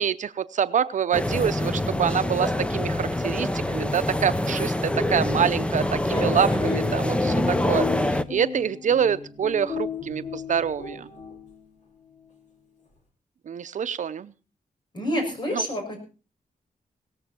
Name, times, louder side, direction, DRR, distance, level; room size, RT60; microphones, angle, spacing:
voice 1, 0.0-11.1 13.5-14.3 15.5-15.7, right 8 dB, 60° right, 12 dB, 0.7 m, -26 dB
sound 1, 1.1-8.2, left 1 dB, 10° left, 0.7 m, -25 dB
sound 2, 4.4-11.9, left 7 dB, 65° left, 6.3 m, -36 dB
voice 2, 6.1-6.8 14.9-16.0, equal, 35° left, 4 dB, 6.5 m, -29 dB
18.0 x 14.5 x 4.4 m, 0.35 s
wide cardioid pair, 150°, 14 cm